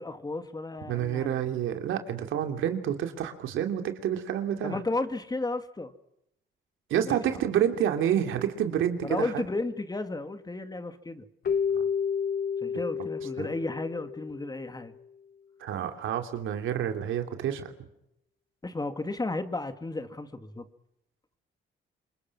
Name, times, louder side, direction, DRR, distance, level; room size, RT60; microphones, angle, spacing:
voice 1, 0.0-1.4 4.6-5.9 7.0-7.2 9.0-11.3 12.6-15.0 18.6-20.7, left 2 dB, 20° left, 9 dB, 2.1 m, -33 dB
voice 2, 0.9-4.8 6.9-9.4 11.7-11.9 13.4-13.5 15.6-17.7, right 10 dB, 80° right, 6 dB, 2.9 m, -28 dB
Keyboard (musical), 11.4-14.7, left 6 dB, 50° left, 1.0 m, -30 dB
27.0 x 23.5 x 6.1 m, 0.81 s
cardioid pair, 90°, 20 cm